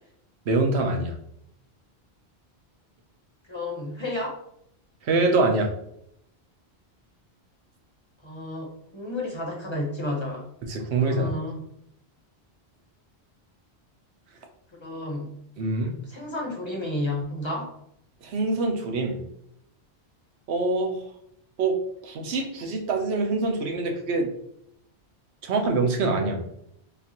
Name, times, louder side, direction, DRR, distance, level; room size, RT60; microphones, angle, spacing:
voice 1, 0.5-1.1 5.0-5.7 10.7-11.3 15.6-16.0 18.2-19.2 20.5-21.0 21.6-24.3 25.4-26.4, right 3 dB, 85° right, 3 dB, 1.0 m, -25 dB
voice 2, 3.5-4.4 8.2-10.5 10.9-11.6 14.8-15.4 16.0-17.7, left 1 dB, 30° left, -2 dB, 1.0 m, -32 dB
5.1 x 2.4 x 2.9 m, 0.73 s
omnidirectional pair, 1.1 m